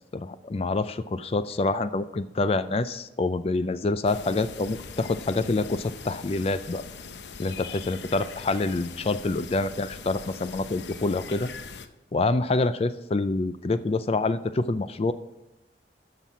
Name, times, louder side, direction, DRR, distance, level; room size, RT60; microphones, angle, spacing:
voice 1, 0.1-6.8 7.4-11.5 12.1-15.1, left 3 dB, 35° left, 13 dB, 0.4 m, -26 dB
sound 1, 4.0-11.9, left 5 dB, 75° left, 0.7 m, -42 dB
12.5 x 6.0 x 6.0 m, 1.0 s
head